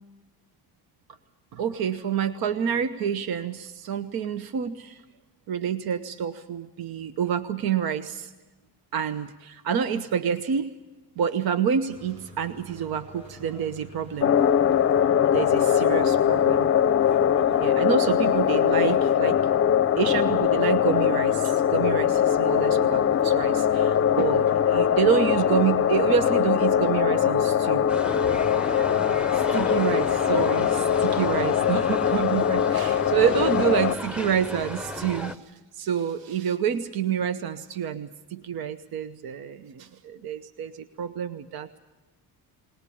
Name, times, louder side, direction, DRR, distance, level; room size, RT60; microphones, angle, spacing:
voice 1, 1.5-5.0 5.5-8.3 8.9-10.7 11.2-14.3 15.3-16.7 17.6-19.4 20.0-27.8 29.5-41.8, right 8 dB, 65° right, 11 dB, 1.0 m, -28 dB
Crime scene with arrival of authorities, 11.9-31.8, right 1 dB, 50° right, 6.2 m, -49 dB
sound 1, 14.2-33.9, left 9 dB, 35° left, 0.6 m, -22 dB
sound 2, 27.9-35.4, left 1 dB, 5° right, 0.8 m, -35 dB
21.0 x 19.5 x 8.6 m, 1.1 s
cardioid pair, 115°, 39 cm